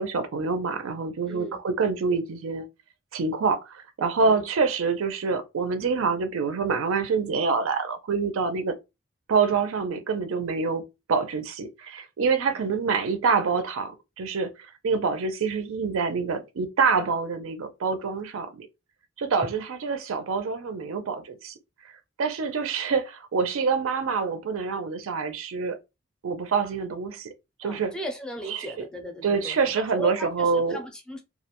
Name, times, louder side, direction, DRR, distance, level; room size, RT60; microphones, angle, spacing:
voice 1, 0.0-2.7 3.1-8.7 9.3-10.8 11.1-14.5 14.8-18.7 19.2-21.5 22.2-25.8 26.2-27.3 27.6-27.9 28.5-28.9 29.2-30.8, right 5 dB, 85° right, 0.4 m, -26 dB
voice 2, 1.3-1.6 4.2-4.4 12.5-12.7 27.6-31.2, left 1 dB, 5° left, 0.4 m, -37 dB
2.3 x 2.1 x 2.8 m
head